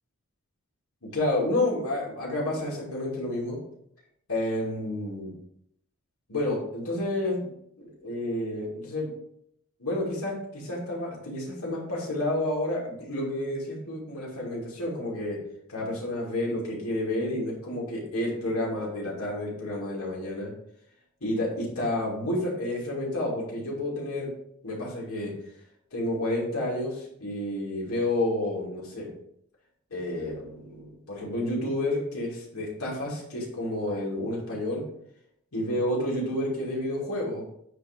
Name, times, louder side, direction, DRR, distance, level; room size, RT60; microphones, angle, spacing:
voice 1, 1.0-3.6 4.3-5.3 6.3-7.5 7.8-9.1 9.8-15.4 15.7-20.5 21.2-24.3 24.6-25.3 25.9-29.1 29.9-34.8 35.5-37.4, left 1 dB, 85° left, -4 dB, 2.4 m, -30 dB
9.1 x 3.1 x 3.6 m, 0.73 s
head